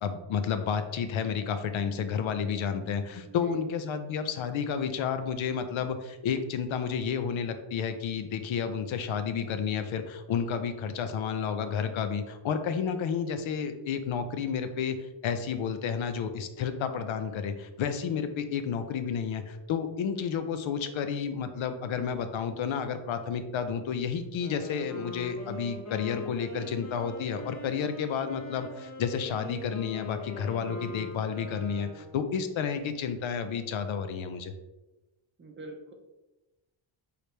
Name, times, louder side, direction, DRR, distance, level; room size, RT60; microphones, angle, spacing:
voice 1, 0.0-15.0 15.2-34.5, left 7 dB, 70° left, 9 dB, 0.6 m, -31 dB
voice 2, 3.2-3.6 27.9-28.0 35.4-35.9, right 2 dB, 25° right, 3 dB, 0.6 m, -45 dB
Wind instrument woodwind instrument, 24.2-32.2, left 1 dB, 35° left, 1.0 m, -42 dB
4.8 x 3.3 x 3.2 m, 1.0 s
wide cardioid pair, 155°, 49 cm